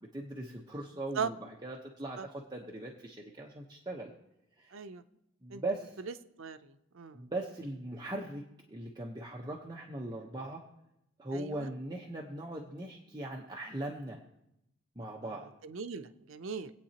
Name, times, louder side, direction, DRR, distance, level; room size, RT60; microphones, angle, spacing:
voice 1, 0.0-4.1 4.6-4.8 5.4-6.0 7.1-8.4 8.7-10.6 11.2-14.2 15.0-15.5, right 1 dB, 20° right, -2 dB, 1.0 m, -40 dB
voice 2, 4.7-5.0 5.5-5.6 6.4-7.2 11.3-11.7 15.6-16.7, right 6 dB, 75° right, 11 dB, 0.6 m, -39 dB
25.5 x 8.7 x 2.9 m, 0.87 s
head